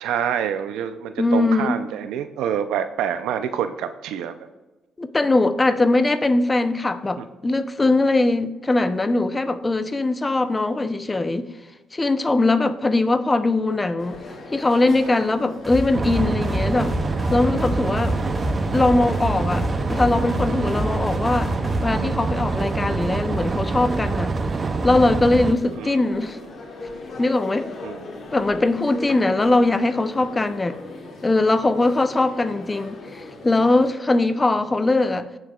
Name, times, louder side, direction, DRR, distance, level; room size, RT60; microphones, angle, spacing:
voice 1, 0.0-4.3 7.2-7.3 25.7-26.0 27.8-28.1, right 9 dB, 90° right, 0.5 m, -27 dB
voice 2, 1.2-1.8 5.0-11.5 11.9-14.2 14.5-16.9 17.3-18.2 18.7-21.5 21.8-24.3 24.8-26.4 27.2-27.7 28.3-30.8 31.2-35.3, left 2 dB, 20° left, 0.6 m, -21 dB
sound 1, 14.0-33.9, left 2 dB, 55° left, 2.3 m, -39 dB
sound 2, 15.6-21.8, left 1 dB, 5° right, 2.3 m, -30 dB
sound 3, 15.9-25.6, right 4 dB, 35° right, 0.6 m, -25 dB
17.5 x 6.4 x 2.4 m
cardioid pair, 90°, 0 cm